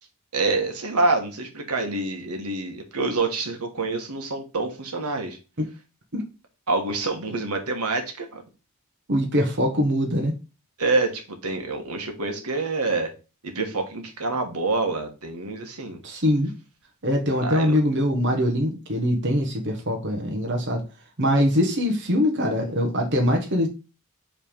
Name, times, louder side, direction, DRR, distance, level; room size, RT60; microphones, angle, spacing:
voice 1, 0.3-5.4 6.7-8.4 10.8-13.1 13.4-16.0 17.4-17.8, right 3 dB, 85° right, 4 dB, 1.4 m, -26 dB
voice 2, 9.1-10.3 16.0-16.5 17.0-20.8 21.2-23.7, equal, 55° right, 3 dB, 1.1 m, -23 dB
5.6 x 3.4 x 5.1 m, 0.31 s
head